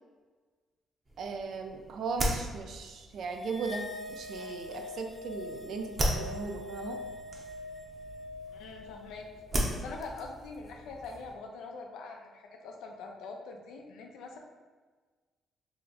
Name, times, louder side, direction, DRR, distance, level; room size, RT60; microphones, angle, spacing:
sound 1, 1.0-11.4, equal, 30° right, 0.8 m, -38 dB
voice 1, 1.2-7.0, right 4 dB, 65° right, 4 dB, 0.4 m, -37 dB
sound 2, 3.4-10.0, left 2 dB, ahead, 0.4 m, -44 dB
voice 2, 8.5-9.3 9.7-14.4, left 3 dB, 85° left, 2 dB, 0.5 m, -44 dB
2.8 x 2.4 x 3.9 m, 1.4 s
cardioid pair, 90°, 0 cm